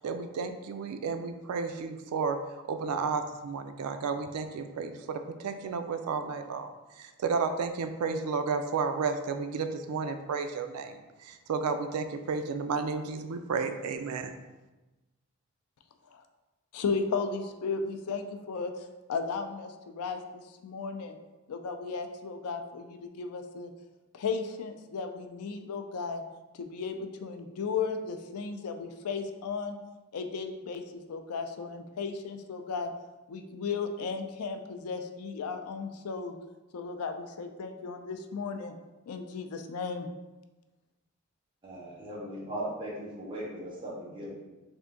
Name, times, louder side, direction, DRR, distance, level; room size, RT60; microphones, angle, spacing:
voice 1, 0.0-2.4 2.7-6.7 7.0-14.4, right 5 dB, 90° right, 8 dB, 0.3 m, -32 dB
voice 2, 16.7-21.2 21.5-23.7 24.1-26.2 26.5-29.8 30.1-32.9 33.3-36.3 36.7-38.7 39.1-40.1, left 5 dB, 85° left, 6 dB, 0.4 m, -35 dB
voice 3, 41.6-44.3, right 1 dB, 20° right, -6 dB, 0.9 m, -38 dB
3.5 x 2.6 x 3.7 m, 1.1 s
head